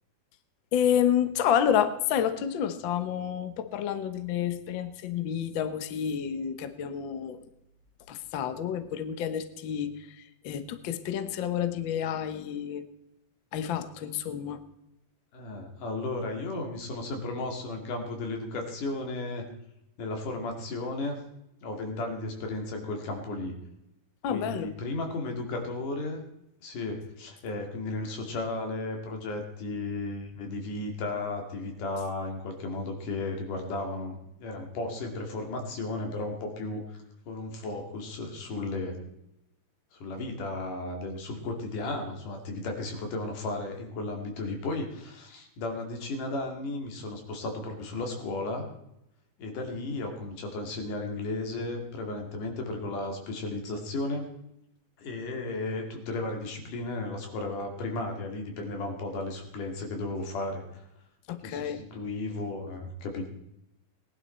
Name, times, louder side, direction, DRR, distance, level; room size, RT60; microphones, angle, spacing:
voice 1, 0.7-7.5 8.1-12.9 13.5-14.6 24.2-24.7 61.3-61.8, left 9 dB, 65° left, 10 dB, 1.2 m, -29 dB
voice 2, 15.3-19.5 20.0-21.2 21.6-23.6 24.3-26.2 26.6-37.0 37.3-39.1 39.9-48.7 49.4-54.3 55.0-60.8 61.4-63.3, left 2 dB, 90° left, 3 dB, 3.8 m, -34 dB
19.0 x 11.0 x 4.4 m, 0.83 s
omnidirectional pair, 3.6 m